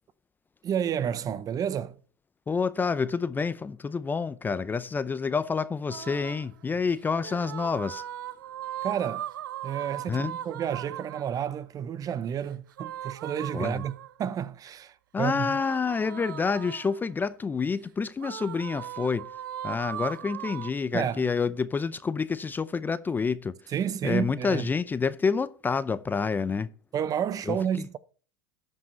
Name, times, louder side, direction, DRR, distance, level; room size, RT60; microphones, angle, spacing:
voice 1, 0.6-1.9 8.8-9.3 9.6-15.6 20.9-21.2 23.7-24.7 26.9-28.0, right 8 dB, 35° right, 0.7 m, -30 dB
voice 2, 2.5-8.0 10.1-10.3 13.5-13.8 15.1-19.3 19.6-23.5 24.0-26.7 27.5-27.8, left 5 dB, 20° left, 0.5 m, -28 dB
sound 1, 5.9-6.5 7.2-11.4 12.7-14.3 15.4-17.1 18.2-20.7, right 12 dB, 80° right, 0.5 m, -38 dB
12.5 x 5.4 x 5.2 m
hypercardioid pair, 90°, 11 cm